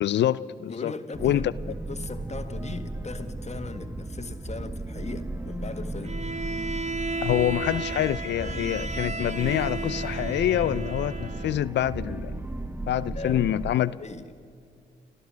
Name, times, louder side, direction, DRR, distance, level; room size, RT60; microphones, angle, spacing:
voice 1, 0.0-0.9 1.2-1.5 7.2-12.4 12.9-13.9, left 12 dB, 70° left, 0.5 m, -26 dB
voice 2, 0.6-6.2 13.1-13.5 13.8-14.3, left 3 dB, 35° left, 1.8 m, -38 dB
sound 1, 1.1-13.7, right 2 dB, 10° right, 1.3 m, -35 dB
Bowed string instrument, 6.0-11.7, right 3 dB, 35° right, 1.1 m, -34 dB
30.0 x 14.0 x 6.4 m
supercardioid pair, 50°, 19 cm